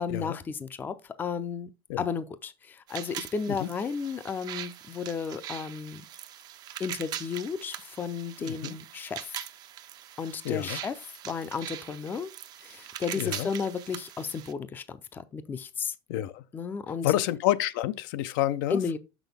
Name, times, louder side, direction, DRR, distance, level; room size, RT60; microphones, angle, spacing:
voice 1, 0.0-1.7 2.0-6.0 6.8-9.3 10.2-10.9 11.2-12.3 12.6-15.9 16.5-17.1 18.7-19.0, left 6 dB, 15° left, 0.5 m, -33 dB
sound 1, 2.9-14.5, right 11 dB, 35° right, 0.5 m, -42 dB
voice 2, 8.4-8.8 10.4-10.8 13.2-13.5 16.1-16.4 17.0-18.8, left 14 dB, 70° left, 0.5 m, -28 dB
6.4 x 6.0 x 3.4 m
supercardioid pair, 150°, 12 cm